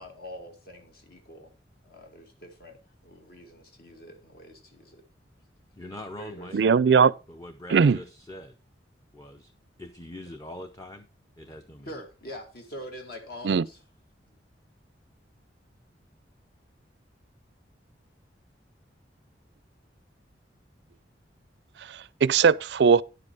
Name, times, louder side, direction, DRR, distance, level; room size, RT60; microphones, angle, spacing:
voice 1, 0.0-1.5 1.8-2.8 3.0-5.0 6.2-6.8 11.8-13.8 14.3-14.4, equal, 55° left, 2.0 m, -44 dB
voice 2, 5.8-6.6 7.3-8.6 9.1-9.5 9.8-11.1 11.4-11.9, left 1 dB, 20° left, 0.7 m, -43 dB
voice 3, 6.5-7.1 7.7-8.0 13.4-13.6 21.8-23.0, right 6 dB, 65° right, 0.4 m, -20 dB
9.9 x 7.6 x 4.5 m
head